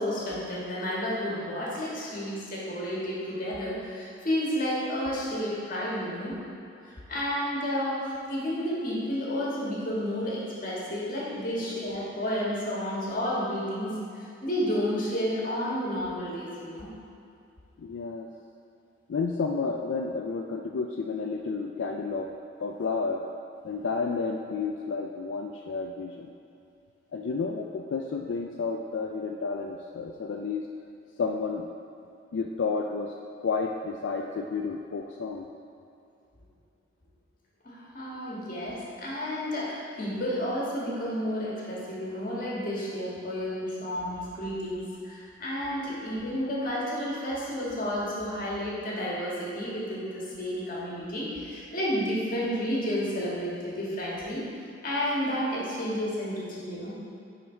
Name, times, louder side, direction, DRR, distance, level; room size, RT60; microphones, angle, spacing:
voice 1, 0.0-6.4 6.8-16.9 37.6-57.0, equal, 45° left, -6 dB, 1.7 m, -31 dB
voice 2, 17.8-18.3 19.1-23.2 23.6-26.3 27.1-30.7 31.2-31.7 32.3-35.5 45.9-46.1, left 4 dB, 80° left, 2 dB, 0.4 m, -31 dB
9.3 x 3.9 x 4.4 m, 2.6 s
head